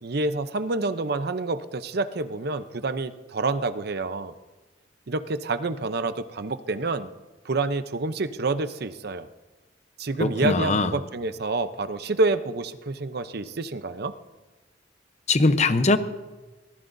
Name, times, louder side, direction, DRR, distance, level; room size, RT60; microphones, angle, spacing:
voice 1, 0.0-4.3 5.1-7.1 7.4-9.3 10.0-14.1, right 3 dB, 60° right, 11 dB, 0.7 m, -28 dB
voice 2, 10.2-10.9 15.3-16.0, left 3 dB, 40° left, 10 dB, 0.8 m, -21 dB
23.5 x 18.5 x 2.7 m, 1.2 s
head